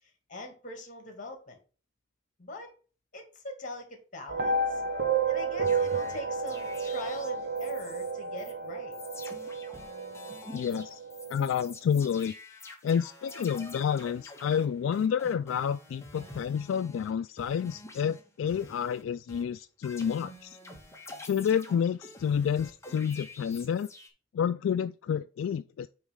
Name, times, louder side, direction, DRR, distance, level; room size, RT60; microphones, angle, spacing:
voice 1, 0.0-1.6 2.4-2.7 3.1-4.8 5.3-9.0, left 1 dB, 40° left, 2.1 m, -42 dB
sound 1, 4.3-11.5, right 4 dB, 60° right, 0.9 m, -31 dB
sound 2, 5.6-8.1 8.4-8.5 8.9-17.1 17.4-19.0 19.3-24.1, left 2 dB, 15° left, 1.2 m, -48 dB
voice 2, 10.5-11.0 11.3-12.3 12.8-20.6 21.3-23.9 24.3-25.9, left 7 dB, 85° left, 0.3 m, -29 dB
8.0 x 3.2 x 5.2 m
head